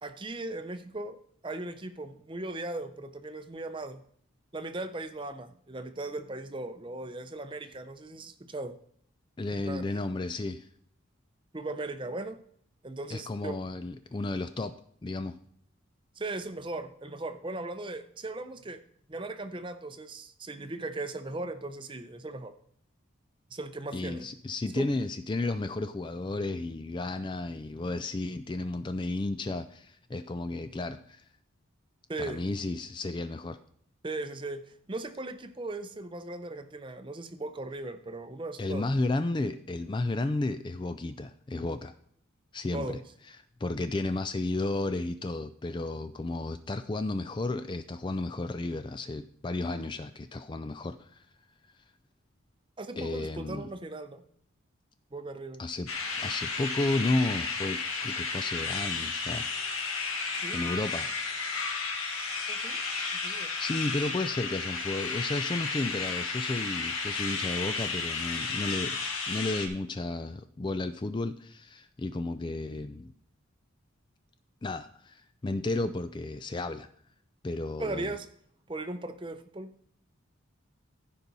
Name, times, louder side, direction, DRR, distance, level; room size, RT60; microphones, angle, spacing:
voice 1, 0.0-1.2 1.4-4.0 4.5-8.7 9.6-9.8 11.5-12.4 12.8-13.6 16.2-18.8 19.1-22.5 23.5-24.3 24.8-24.9 32.1-32.4 34.0-34.6 34.9-39.0 42.7-43.0 52.8-54.2 55.1-55.6 60.3-60.6 62.5-62.8 63.2-63.5 77.8-78.3 78.7-79.7, right 2 dB, 25° right, 9 dB, 0.6 m, -38 dB
voice 2, 9.4-10.7 13.1-14.7 15.0-15.4 23.9-31.2 32.2-33.6 38.6-41.9 42.5-43.0 43.3-51.2 53.0-53.7 55.6-55.9 56.2-59.5 60.5-61.1 63.4-69.0 69.3-73.1 74.6-76.9 77.4-78.1, left 2 dB, 20° left, 10 dB, 0.3 m, -33 dB
sound 1, 55.9-69.7, left 4 dB, 85° left, 1.8 m, -33 dB
14.5 x 5.3 x 4.1 m, 0.64 s
head